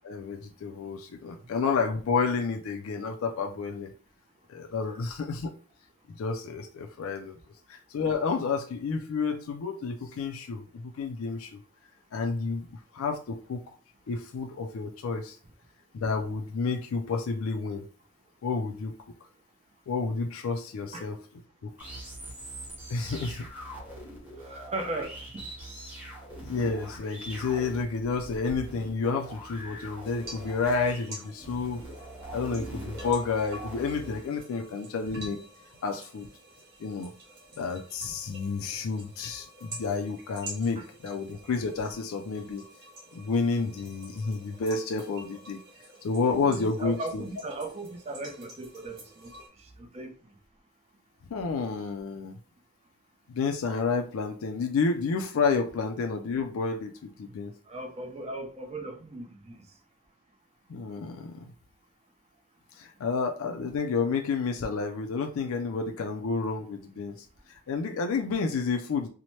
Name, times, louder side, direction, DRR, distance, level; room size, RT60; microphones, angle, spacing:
voice 1, 0.0-3.9 4.5-5.5 6.1-7.4 7.7-11.6 12.1-13.6 14.1-15.4 15.9-17.9 18.4-18.9 19.9-21.2 21.6-21.7 22.9-23.5 26.5-31.8 32.3-35.4 35.8-36.3 36.8-37.1 37.6-42.6 43.1-45.6 46.0-47.2 51.3-52.3 53.3-57.5 60.7-61.4 62.8-67.2 67.5-69.1, left 4 dB, 75° left, 0.4 m, -30 dB
sound 1, 21.8-34.3, right 1 dB, 10° right, 1.0 m, -42 dB
voice 2, 24.4-25.5 40.8-40.9 46.3-49.3 49.6-50.1 57.7-59.6, right 2 dB, 30° right, 0.5 m, -37 dB
sound 2, 30.0-49.5, right 1 dB, 55° right, 1.0 m, -48 dB
2.8 x 2.1 x 3.0 m
head